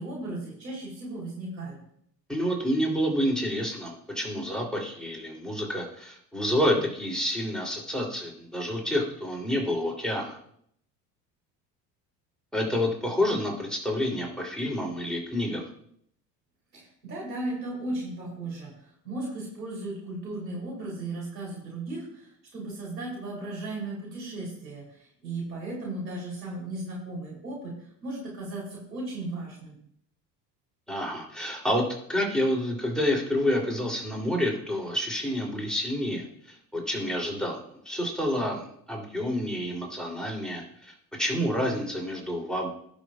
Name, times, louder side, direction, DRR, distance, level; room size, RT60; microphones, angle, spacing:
voice 1, 0.0-1.8 16.7-27.8 28.0-29.8, right 2 dB, 90° right, -4 dB, 3.6 m, -36 dB
voice 2, 2.3-10.4 12.5-15.7 30.9-37.6 37.8-42.7, equal, ahead, -1 dB, 3.2 m, -28 dB
17.5 x 6.1 x 2.4 m, 0.68 s
hypercardioid pair, 65°, 49 cm